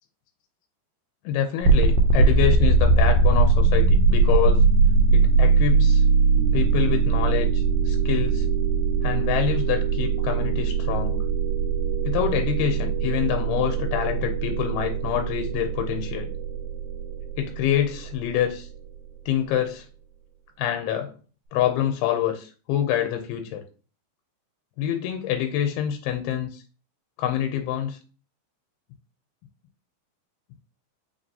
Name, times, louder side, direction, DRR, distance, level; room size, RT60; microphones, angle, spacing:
voice 1, 1.2-4.6 5.1-6.1 6.5-8.5 9.0-11.2 12.1-16.3 17.4-18.7 19.3-19.9 20.6-21.2 21.5-23.6 24.8-26.6 27.2-28.0, left 10 dB, 90° left, 5 dB, 2.5 m, -26 dB
sound 1, 1.6-18.5, right 4 dB, 90° right, 2.5 m, -21 dB
5.5 x 2.9 x 2.7 m, 0.38 s
omnidirectional pair, 4.3 m